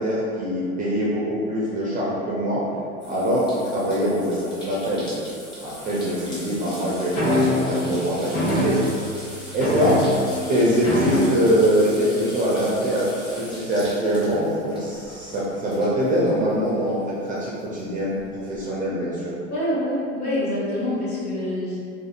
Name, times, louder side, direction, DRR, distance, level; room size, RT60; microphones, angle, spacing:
voice 1, 0.0-2.6 3.1-5.1 5.6-8.8 9.2-10.0 10.5-17.0 17.3-18.2 18.5-19.3, equal, 20° right, -7 dB, 0.4 m, -23 dB
sound 1, 3.0-17.0 17.4-18.6, equal, 10° left, 0.7 m, -41 dB
sound 2, 7.1-7.7 8.3-9.2 9.6-10.4 10.8-11.6 12.5-12.9, left 1 dB, 45° left, 1.3 m, -23 dB
voice 2, 19.5-21.8, left 1 dB, 85° left, -10 dB, 1.3 m, -26 dB
2.7 x 2.4 x 2.4 m, 2.4 s
hypercardioid pair, 95°, 42 cm